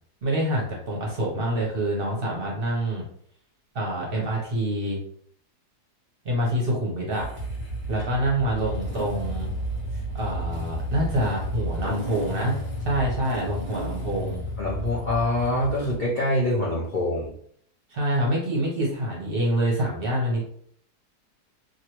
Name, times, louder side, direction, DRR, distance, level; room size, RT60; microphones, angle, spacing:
voice 1, 0.2-3.1 3.7-5.0 6.2-7.3 7.9-9.5 9.9-14.4 17.9-20.4, right 1 dB, 45° right, -3 dB, 0.8 m, -26 dB
Motorcycle / Engine starting, 7.1-16.0, right 1 dB, 10° left, 1.0 m, -32 dB
voice 2, 14.6-17.3, left 1 dB, 85° left, -5 dB, 0.4 m, -25 dB
3.0 x 2.4 x 2.9 m, 0.63 s
omnidirectional pair, 1.7 m